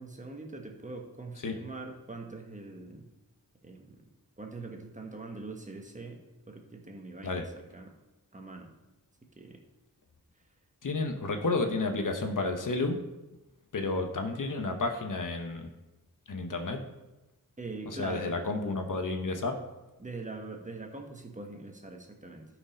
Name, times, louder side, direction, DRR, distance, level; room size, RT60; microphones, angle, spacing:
voice 1, 0.0-3.1 3.6-4.0 4.4-7.9 8.3-8.7 9.3-9.6 17.6-18.4 20.0-22.5, right 3 dB, 20° right, 2 dB, 1.2 m, -43 dB
voice 2, 10.8-13.0 13.7-15.7 16.3-16.8 17.9-19.6, left 3 dB, 60° left, 5 dB, 1.1 m, -31 dB
12.0 x 5.2 x 5.1 m, 1.0 s
wide cardioid pair, 115°, 35 cm